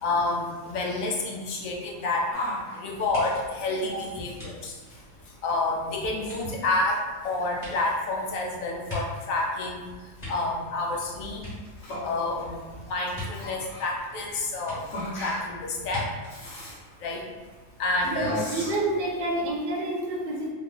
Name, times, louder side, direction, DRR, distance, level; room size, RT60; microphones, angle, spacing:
voice 1, 0.0-2.3 2.7-4.7 5.4-7.0 7.2-9.9 10.3-11.4 12.0-14.8 15.1-16.1 17.0-17.2 17.8-18.4, left 2 dB, 85° left, -1 dB, 1.1 m, -29 dB
Yell, 2.3-19.5, left 1 dB, 70° left, 1.3 m, -42 dB
sound 1, 3.1-5.7 6.2-9.5 9.9-11.0 11.3-12.2 13.1-13.3 14.7-14.8 15.9-16.0 16.3-16.5, left 2 dB, 30° left, 1.4 m, -41 dB
voice 2, 18.0-20.5, right 2 dB, 50° right, -2 dB, 0.8 m, -28 dB
3.0 x 2.4 x 3.7 m, 1.4 s
omnidirectional pair, 1.4 m